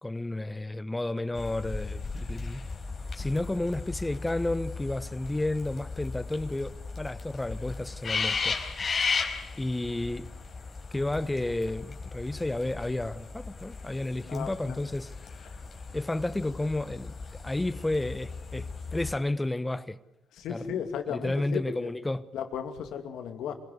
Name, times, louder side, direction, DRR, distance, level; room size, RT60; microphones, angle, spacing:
voice 1, 0.0-2.6 3.1-6.7 7.0-8.5 9.6-10.3 10.9-15.1 15.9-20.0 20.5-20.8 21.1-22.2, left 2 dB, 15° left, 1.2 m, -31 dB
sound 1, 1.3-19.1, left 4 dB, 40° left, 4.2 m, -36 dB
voice 2, 14.3-14.8 15.5-15.6 20.3-21.9 22.3-23.5, left 8 dB, 80° left, 2.5 m, -35 dB
26.0 x 17.0 x 8.2 m
cardioid pair, 90°, 0 cm